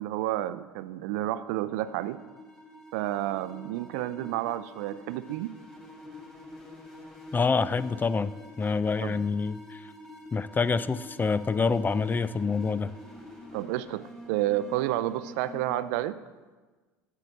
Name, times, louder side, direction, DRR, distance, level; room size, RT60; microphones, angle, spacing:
voice 1, 0.0-2.2 2.9-5.5 9.0-9.2 13.5-16.2, right 14 dB, 70° right, 15 dB, 0.5 m, -30 dB
sound 1, 1.1-15.8, left 1 dB, 5° left, 3.4 m, -47 dB
voice 2, 7.3-9.9 10.3-12.9, left 4 dB, 20° left, 15 dB, 0.4 m, -27 dB
8.4 x 7.5 x 6.5 m, 1.3 s
hypercardioid pair, 80°, 9 cm